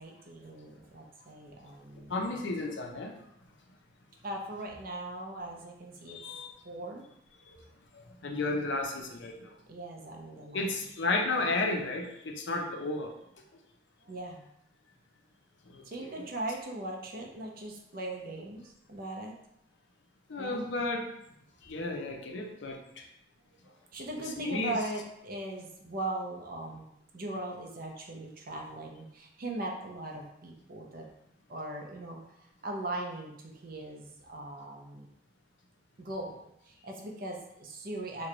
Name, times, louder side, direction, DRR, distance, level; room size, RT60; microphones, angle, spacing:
voice 1, 0.0-2.2 4.2-6.2 6.6-7.0 9.7-10.7 14.0-14.5 15.8-19.4 20.4-20.7 23.9-26.9 27.1-31.1 31.5-32.2 32.6-35.1 36.0-38.3, right 1 dB, 50° right, 1 dB, 0.6 m, -39 dB
voice 2, 2.1-3.1 6.1-6.5 7.5-7.6 8.0-9.5 10.5-13.1 15.7-16.1 20.3-21.0 21.6-22.8 24.4-24.8, left 2 dB, 70° left, 2 dB, 0.5 m, -33 dB
3.0 x 2.2 x 3.8 m, 0.77 s
head